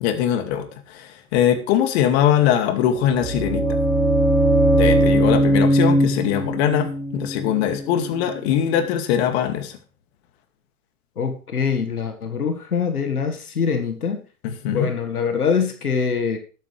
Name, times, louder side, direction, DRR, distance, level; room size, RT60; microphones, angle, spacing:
voice 1, 0.0-3.7 4.7-9.8 14.4-14.9, left 10 dB, 45° left, 7 dB, 2.3 m, -21 dB
sound 1, 2.9-8.8, right 1 dB, 10° left, 5.0 m, -20 dB
voice 2, 11.2-14.2 14.7-16.4, left 6 dB, 90° left, 6 dB, 1.8 m, -24 dB
13.0 x 11.5 x 3.3 m, 0.38 s
hypercardioid pair, 120°, 43 cm